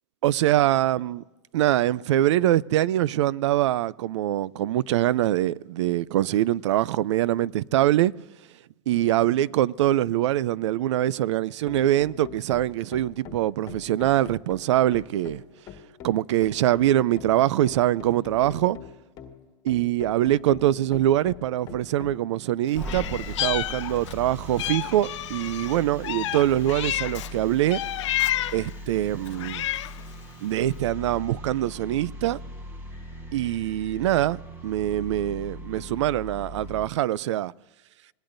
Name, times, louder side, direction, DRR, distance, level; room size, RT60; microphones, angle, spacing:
voice 1, 0.2-1.2 1.5-8.1 8.9-15.4 16.0-18.8 19.6-27.8 28.5-29.7 30.4-32.4 33.3-34.4 34.6-37.5, right 13 dB, 80° right, 0.4 m, -23 dB
sound 1, 11.3-22.2, left 8 dB, 25° left, 1.4 m, -44 dB
sound 2, 22.7-36.9, equal, 15° right, 1.1 m, -39 dB
Meow, 22.8-24.2 24.6-27.3 27.7-28.7 29.3-30.1, left 14 dB, 80° left, 0.5 m, -30 dB
25.0 x 19.5 x 2.6 m
supercardioid pair, 165°, 15 cm